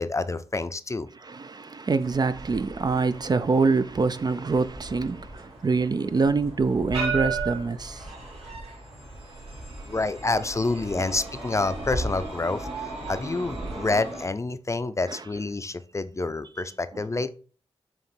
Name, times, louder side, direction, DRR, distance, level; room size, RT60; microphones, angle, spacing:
voice 1, 0.0-1.1 9.9-12.7 13.1-17.3, left 3 dB, 30° left, 0.5 m, -28 dB
voice 2, 1.1-8.0 10.9-11.0 13.6-13.9 15.1-15.2, right 4 dB, 40° right, 0.4 m, -25 dB
sound 1, 2.0-14.3, right 3 dB, 85° right, 3.1 m, -36 dB
7.4 x 3.0 x 4.3 m
cardioid pair, 65°, 10 cm